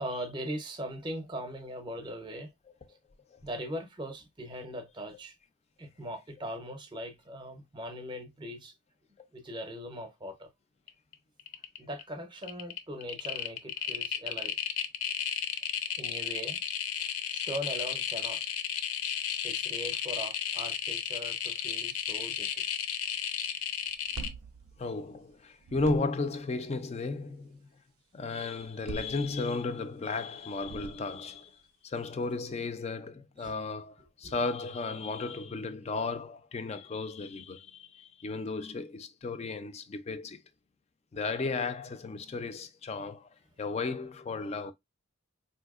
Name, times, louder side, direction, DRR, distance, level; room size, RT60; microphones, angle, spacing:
voice 1, 0.0-2.5 3.4-5.4 5.8-8.7 9.3-10.5 11.8-14.6 16.0-16.6 17.3-18.4 19.4-22.6 33.4-33.5 34.2-34.4, equal, 20° right, 0.6 m, -40 dB
sound 1, 10.9-11.1 11.4-12.0 12.4-24.3, left 8 dB, 80° left, 0.6 m, -33 dB
sound 2, 23.9-25.3 25.6-26.4 28.6-29.8 30.5-31.4, right 4 dB, 70° right, 0.3 m, -44 dB
voice 2, 24.8-27.7 28.1-31.6 31.8-40.4 41.1-43.3 43.6-44.7, left 3 dB, 30° left, 0.3 m, -34 dB
4.0 x 2.7 x 2.3 m
head